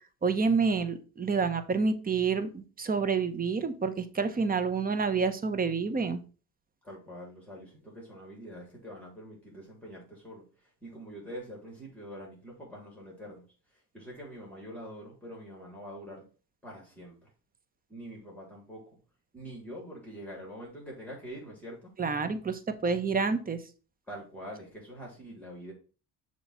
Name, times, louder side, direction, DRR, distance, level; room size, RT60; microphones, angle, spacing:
voice 1, 0.2-6.2 22.0-23.6, right 5 dB, 25° right, 11 dB, 0.9 m, -28 dB
voice 2, 6.8-13.5 13.7-16.2 16.6-17.3 17.9-18.8 19.3-21.9 24.1-25.7, equal, 5° left, -3 dB, 3.0 m, -45 dB
6.9 x 3.1 x 5.4 m, 0.36 s
supercardioid pair, 85°, 34 cm